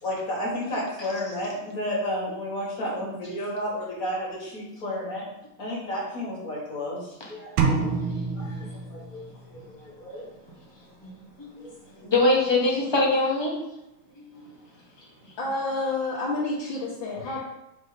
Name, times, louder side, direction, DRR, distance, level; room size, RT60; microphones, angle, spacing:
voice 1, 0.0-5.2 5.6-7.9 8.3-9.2 9.5-10.2 11.6-11.7 15.0-15.1 17.2-17.4, left 1 dB, 45° left, -5 dB, 2.3 m, -32 dB
sound 1, 7.6-9.6, right 5 dB, 75° right, 1.5 m, -27 dB
voice 2, 12.0-13.6 14.1-14.4, left 2 dB, 20° left, -3 dB, 0.9 m, -23 dB
voice 3, 15.4-17.4, left 2 dB, 70° left, -7 dB, 1.9 m, -29 dB
5.2 x 3.7 x 5.1 m, 0.90 s
omnidirectional pair, 2.2 m